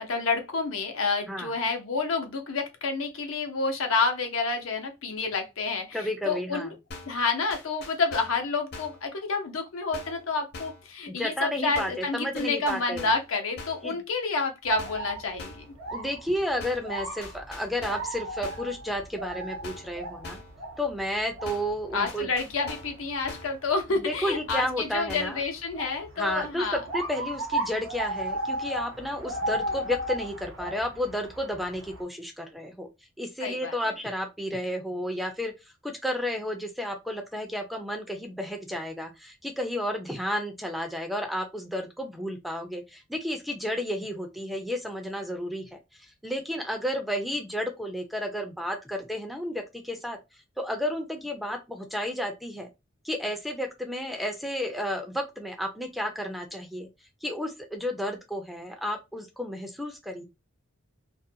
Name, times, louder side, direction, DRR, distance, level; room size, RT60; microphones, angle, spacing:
voice 1, 0.0-6.7 7.1-15.6 21.9-26.8 33.4-33.7, left 4 dB, 90° left, 0.7 m, -29 dB
voice 2, 5.9-6.7 11.1-13.1 13.8-14.0 15.9-20.4 20.8-22.3 23.9-25.4 26.2-32.9 33.2-35.5 35.8-50.2 50.6-52.7 53.0-56.9 57.2-60.2, equal, ahead, 0.4 m, -32 dB
sound 1, 6.9-7.2 7.5-8.4 8.7-9.0 9.9-10.3 10.5-10.9 11.8-12.1 12.4-13.3 13.6-13.9 14.8-15.1 15.4-15.7 16.6-16.9 17.2-18.1 18.4-18.7 19.6-20.0 20.2-20.6 21.5-21.8 22.1-23.0 23.3-23.6 24.5-24.8 25.1-25.4, left 3 dB, 55° left, 0.7 m, -43 dB
sound 2, 14.6-32.0, right 1 dB, 85° right, 0.8 m, -36 dB
2.5 x 2.2 x 2.6 m
head